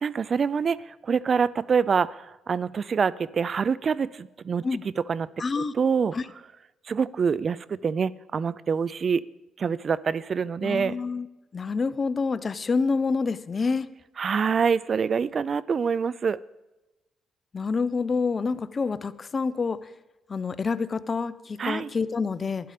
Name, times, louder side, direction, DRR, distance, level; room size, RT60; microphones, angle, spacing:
voice 1, 0.0-4.6 5.1-5.3 5.6-6.1 6.9-9.2 9.6-10.9 14.2-16.4 21.6-21.9, right 6 dB, 45° right, 20 dB, 0.4 m, -25 dB
voice 2, 5.4-5.7 6.1-6.3 10.6-11.3 11.5-13.9 17.5-19.9 20.3-22.7, left 4 dB, 35° left, 15 dB, 0.7 m, -27 dB
12.5 x 11.5 x 5.0 m, 1.0 s
cardioid pair, 90°, 0 cm